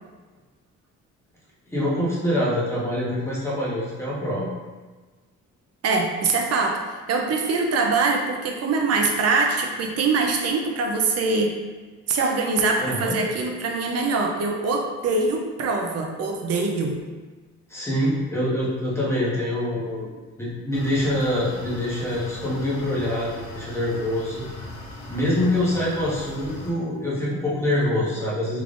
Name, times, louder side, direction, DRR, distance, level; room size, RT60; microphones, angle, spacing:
voice 1, 1.7-4.5 12.8-13.1 17.7-20.1 20.4-24.4 25.1-28.6, left 1 dB, 10° left, -8 dB, 1.2 m, -25 dB
voice 2, 5.8-6.8 7.1-11.5 12.1-17.0, right 3 dB, 55° right, 2 dB, 0.6 m, -23 dB
sound 1, 20.7-26.7, left 2 dB, 70° left, 0.9 m, -39 dB
3.4 x 3.3 x 2.5 m, 1.3 s
cardioid pair, 90°, 30 cm